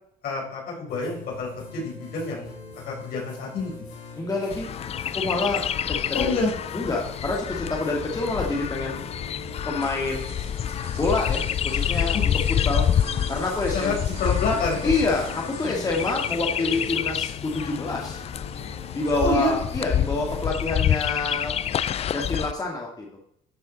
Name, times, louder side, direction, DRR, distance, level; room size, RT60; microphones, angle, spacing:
voice 1, 0.2-2.5 2.8-3.7 6.1-6.5 12.1-12.2 13.7-14.8 19.2-19.5, left 3 dB, 65° left, -3 dB, 4.6 m, -27 dB
sound 1, 0.9-20.5, left 3 dB, 85° left, 3.8 m, -42 dB
voice 2, 4.2-4.7 5.1-5.6 5.9-6.3 6.7-9.0 9.7-10.3 11.0-12.3 12.6-12.9 13.3-13.9 14.8-18.2 18.9-21.6 22.1-23.1, left 3 dB, 20° left, -1 dB, 2.1 m, -27 dB
Chirp tweet, 4.5-22.5, left 9 dB, 40° left, 0.4 m, -28 dB
sound 2, 9.5-17.3, right 5 dB, 75° right, 4.3 m, -46 dB
13.0 x 6.8 x 4.1 m, 0.72 s
cardioid pair, 110°, 17 cm